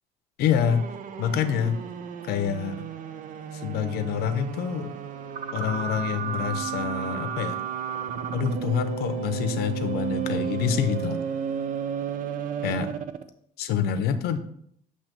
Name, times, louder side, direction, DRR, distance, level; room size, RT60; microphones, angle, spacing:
voice 1, 0.4-0.8 1.2-1.8 2.3-2.8 3.6-4.9 5.5-7.6 8.3-11.2 12.6-12.9 13.6-14.4, left 8 dB, 85° left, 10 dB, 0.7 m, -26 dB
sound 1, 0.6-13.3, right 8 dB, 55° right, 0.5 m, -33 dB
7.4 x 2.9 x 5.9 m, 0.68 s
cardioid pair, 120°, 16 cm